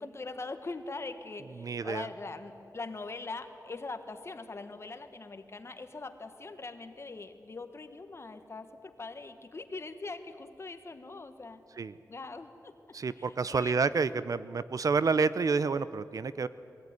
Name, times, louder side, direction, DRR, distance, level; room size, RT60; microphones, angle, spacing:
voice 1, 0.0-11.6 12.1-12.7 13.2-13.7, left 3 dB, 40° left, 8 dB, 1.4 m, -42 dB
voice 2, 1.6-2.1 11.8-11.9 12.9-16.5, right 4 dB, 55° right, 15 dB, 0.6 m, -29 dB
21.5 x 16.0 x 9.6 m, 2.7 s
wide cardioid pair, 105°, 7 cm